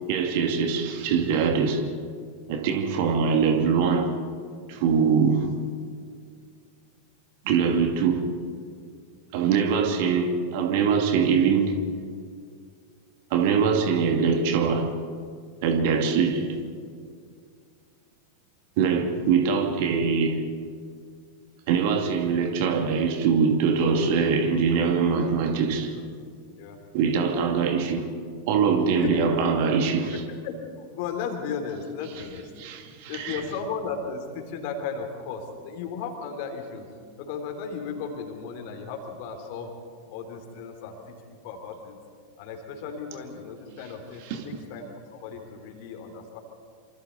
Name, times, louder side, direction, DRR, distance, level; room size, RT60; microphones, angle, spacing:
voice 1, 0.1-1.8 2.5-4.1 4.7-5.5 7.4-8.2 9.3-11.8 13.3-14.9 15.6-16.6 18.8-20.4 21.7-26.0 26.9-28.1 28.5-30.2 32.6-33.4 44.3-44.4, right 6 dB, 50° right, 2.5 m, -23 dB
voice 2, 30.3-32.5 33.1-36.9 37.2-39.7 40.1-41.2 41.4-42.0 42.4-46.4, left 6 dB, 45° left, 3.7 m, -35 dB
27.0 x 26.5 x 4.2 m
figure-of-eight pair, 90°, 0 cm